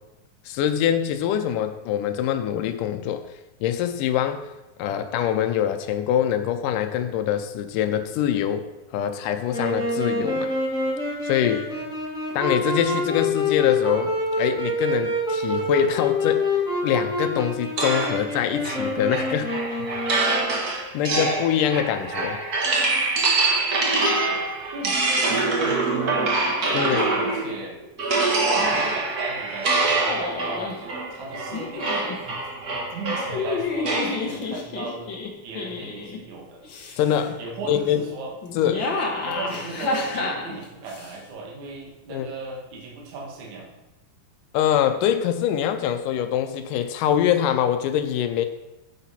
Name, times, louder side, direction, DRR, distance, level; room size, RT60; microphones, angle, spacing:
voice 1, 0.5-3.3 3.6-4.5 4.8-8.7 8.9-10.5 11.2-11.7 12.4-16.4 16.8-19.5 20.9-22.4 26.7-27.2 37.0-37.4 37.7-38.0 38.6-38.8 42.1-42.3 44.5-48.5, left 10 dB, 80° left, 8 dB, 2.2 m, -24 dB
Wind instrument woodwind instrument, 9.5-20.6, left 2 dB, ahead, 2.1 m, -26 dB
sound 1, 17.8-27.6 28.0-34.2, right 3 dB, 45° right, 1.2 m, -25 dB
voice 2, 24.7-26.3 26.7-27.8 28.4-32.4 32.9-35.1 35.4-36.6 37.3-38.3 38.7-43.7, right 4 dB, 60° right, -1 dB, 3.0 m, -37 dB
sound 2, 30.1-30.8 31.5-32.2 33.0-36.2 36.6-37.3 38.4-41.1, left 4 dB, 55° left, 1.3 m, -30 dB
9.4 x 9.0 x 4.3 m, 0.99 s
omnidirectional pair, 3.8 m